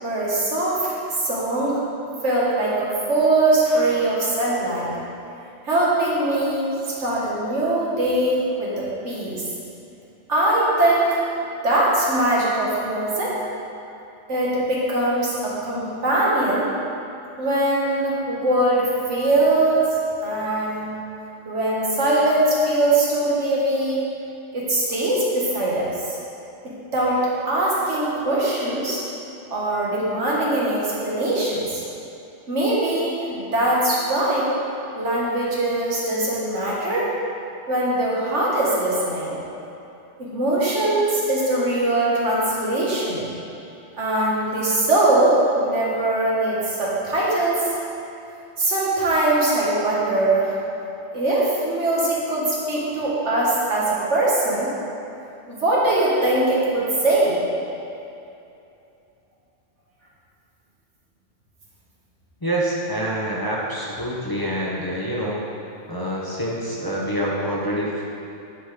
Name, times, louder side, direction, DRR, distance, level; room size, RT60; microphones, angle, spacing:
voice 1, 0.0-1.8 2.2-4.9 5.6-6.7 7.0-9.4 10.3-11.2 11.6-13.4 14.3-16.7 17.4-19.9 20.2-20.9 21.5-24.0 24.5-25.9 26.6-29.0 29.5-31.8 32.5-34.5 35.0-37.1 37.7-39.4 40.2-43.3 44.0-47.7 48.6-50.6 51.1-54.7 55.5-57.4, right 2 dB, 80° right, -6 dB, 1.9 m, -21 dB
voice 2, 62.4-65.5 65.9-68.0, equal, 20° left, -5 dB, 0.9 m, -26 dB
10.5 x 4.0 x 4.9 m, 2.7 s
omnidirectional pair, 1.2 m